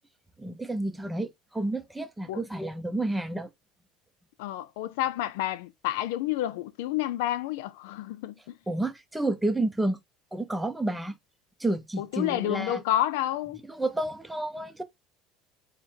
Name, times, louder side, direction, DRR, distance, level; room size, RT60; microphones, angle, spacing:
voice 1, 0.4-3.5 8.7-10.0 10.3-11.2 11.6-12.8 13.7-14.8, right 2 dB, 5° right, 0.6 m, -30 dB
voice 2, 4.4-8.6 12.0-13.6, left 13 dB, 85° left, 0.4 m, -29 dB
4.4 x 2.1 x 3.6 m
cardioid pair, 150°, 0 cm